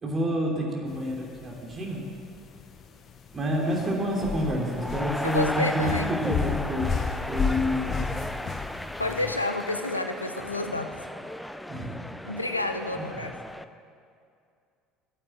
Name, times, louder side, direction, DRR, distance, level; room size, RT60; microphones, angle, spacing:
voice 1, 0.0-2.1 3.3-7.0 7.2-8.0 11.7-12.0 12.9-13.1, equal, 30° right, -1 dB, 3.0 m, -28 dB
sound 1, 0.9-9.3, left 5 dB, 40° left, 0.9 m, -33 dB
sound 2, 3.6-13.6, left 1 dB, 5° left, 0.5 m, -36 dB
voice 2, 5.2-6.1 6.7-6.8 9.0-10.9 12.2-13.3, left 2 dB, 90° left, 7 dB, 0.6 m, -29 dB
9.9 x 8.6 x 9.0 m, 2.4 s
figure-of-eight pair, 65°, 0 cm